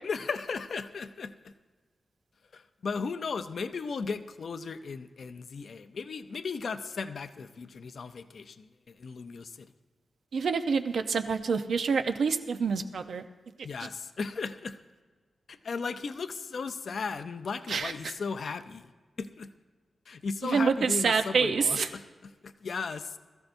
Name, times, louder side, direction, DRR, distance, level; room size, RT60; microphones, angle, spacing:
voice 1, 0.0-1.5 2.5-9.7 13.6-14.8 15.5-18.9 19.2-19.5 20.1-22.0 22.4-23.2, left 5 dB, 55° left, 10 dB, 0.6 m, -36 dB
voice 2, 10.3-13.2 17.7-18.1 20.4-21.9, right 5 dB, 70° right, 8 dB, 0.8 m, -27 dB
20.5 x 14.5 x 2.7 m, 1.4 s
wide cardioid pair, 175°, 0 cm